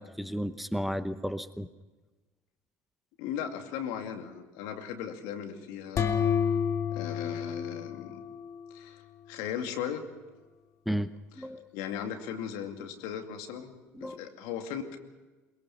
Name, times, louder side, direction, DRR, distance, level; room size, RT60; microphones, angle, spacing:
voice 1, 0.0-1.7 10.9-11.1 11.4-11.7 13.9-14.3, equal, ahead, 13 dB, 0.9 m, -33 dB
voice 2, 3.2-6.1 6.9-8.2 8.7-9.0 9.3-10.0 11.4-11.5 11.7-13.7 14.0-15.0, left 8 dB, 70° left, 5 dB, 2.3 m, -37 dB
sound 1, 6.0-8.7, left 7 dB, 40° left, 2.2 m, -30 dB
22.0 x 22.0 x 5.9 m, 1.2 s
hypercardioid pair, 70°, 7 cm